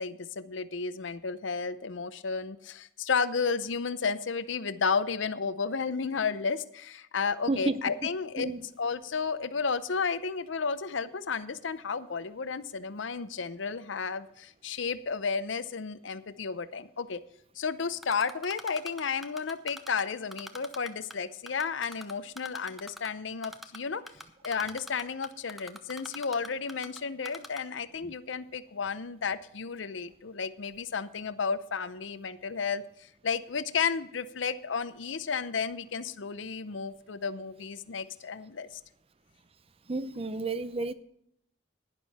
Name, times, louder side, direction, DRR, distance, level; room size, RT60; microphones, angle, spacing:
voice 1, 0.0-8.5 8.8-17.2 17.6-24.0 24.4-38.7, left 5 dB, 75° left, 0.7 m, -32 dB
voice 2, 7.5-7.8 8.4-8.6 39.9-40.9, right 2 dB, 30° right, 0.5 m, -31 dB
Typing, 18.0-20.0 20.3-21.1 21.5-23.1 23.4-23.8 24.1-27.0 27.2-27.6, equal, ahead, 0.8 m, -42 dB
12.0 x 10.5 x 4.2 m
head